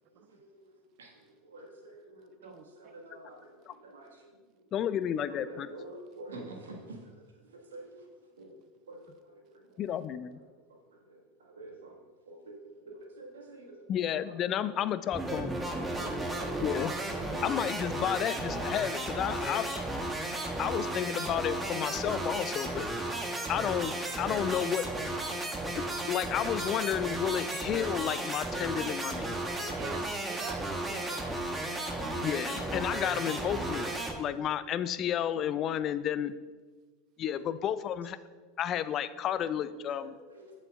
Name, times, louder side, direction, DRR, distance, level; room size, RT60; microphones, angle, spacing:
voice 1, 0.3-4.6 5.3-8.1 8.4-8.6 8.9-9.7 9.9-10.1 10.5-12.6 12.9-13.8 14.2-14.3 14.6-14.8 15.8-17.5 19.3-19.6 20.6-20.8 25.3-25.9 29.4-29.8 30.3-30.5 34.1-34.4 40.0-40.5, right 2 dB, 75° right, 0 dB, 1.6 m, -49 dB
voice 2, 2.4-2.9 29.7-31.2, right 8 dB, 50° right, 11 dB, 0.4 m, -44 dB
voice 3, 4.7-5.7 9.8-10.4 13.9-15.5 16.6-16.9 17.4-19.7 20.6-22.9 23.5-24.9 26.1-29.4 32.2-36.3 37.2-38.2 38.6-40.1, left 10 dB, 40° left, 14 dB, 0.4 m, -31 dB
sound 1, 15.1-34.1, right 1 dB, 15° right, 1.1 m, -34 dB
14.0 x 5.4 x 2.4 m, 1.4 s
figure-of-eight pair, 80°, 0 cm